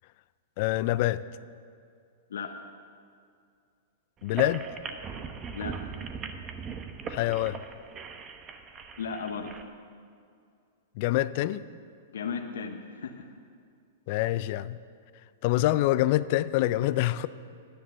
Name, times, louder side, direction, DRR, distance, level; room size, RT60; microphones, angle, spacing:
voice 1, 0.6-1.2 4.2-4.6 7.1-7.6 11.0-11.6 14.1-14.8 15.4-17.3, left 16 dB, 50° left, 16 dB, 0.4 m, -26 dB
sound 1, 4.2-9.6, right 5 dB, 25° right, 0.9 m, -39 dB
voice 2, 9.0-9.5 12.1-13.3, left 6 dB, 80° left, 3 dB, 0.9 m, -35 dB
10.5 x 10.0 x 6.6 m, 2.3 s
hypercardioid pair, 125°, 0 cm